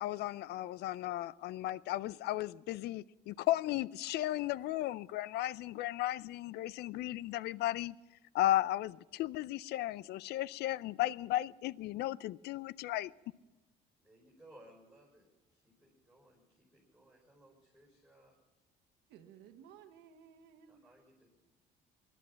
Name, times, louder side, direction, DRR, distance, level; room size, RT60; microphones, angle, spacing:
voice 1, 0.0-8.0 8.3-13.1, left 14 dB, 75° left, 0.4 m, -35 dB
voice 2, 14.0-18.4 20.7-21.3, right 1 dB, ahead, 5.7 m, -62 dB
voice 3, 19.1-20.8, right 8 dB, 85° right, 1.3 m, -57 dB
20.5 x 11.5 x 5.7 m
cardioid pair, 110°, 17 cm